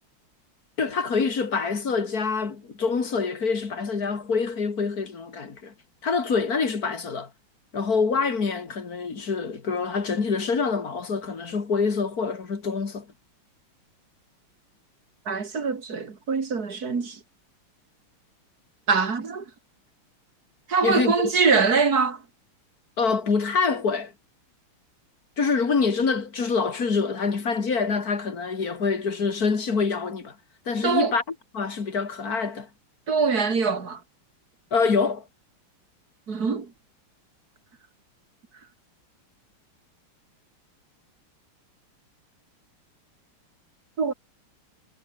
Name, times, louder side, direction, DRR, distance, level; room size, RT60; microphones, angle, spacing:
voice 1, 0.8-5.7 6.0-7.3 7.7-13.1 20.8-21.3 23.0-24.1 25.4-30.3 30.7-31.2 31.5-32.7 34.7-35.2, left 5 dB, 45° left, 2.8 m, -25 dB
voice 2, 15.3-17.2 18.9-19.4 20.7-22.2 30.8-31.2 33.1-34.0 36.3-36.7 44.0-44.1, right 5 dB, 45° right, 3.0 m, -23 dB
omnidirectional pair, 2.4 m